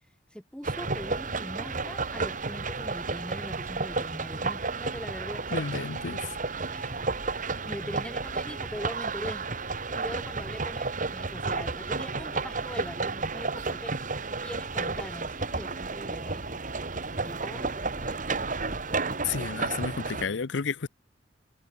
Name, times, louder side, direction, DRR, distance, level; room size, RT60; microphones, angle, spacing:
voice 1, 0.3-5.7 6.7-7.2 7.6-9.5 9.9-13.9 14.4-16.6 17.2-18.3, equal, 5° left, 4.5 m, -41 dB
sound 1, 0.6-20.3, right 3 dB, 45° right, 2.2 m, -32 dB
voice 2, 5.5-6.3 19.2-20.9, left 5 dB, 85° left, 0.7 m, -32 dB
head